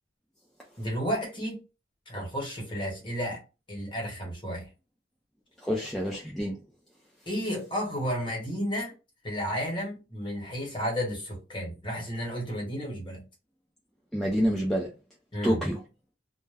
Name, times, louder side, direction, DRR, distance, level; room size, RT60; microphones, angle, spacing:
voice 1, 0.8-1.6 2.1-3.4 3.7-4.7 7.3-8.9 9.2-13.2 15.3-15.6, equal, 25° left, 1.1 m, -32 dB
voice 2, 5.6-6.6 14.1-14.9 15.4-15.8, equal, ahead, 0.4 m, -27 dB
2.2 x 2.1 x 3.3 m
head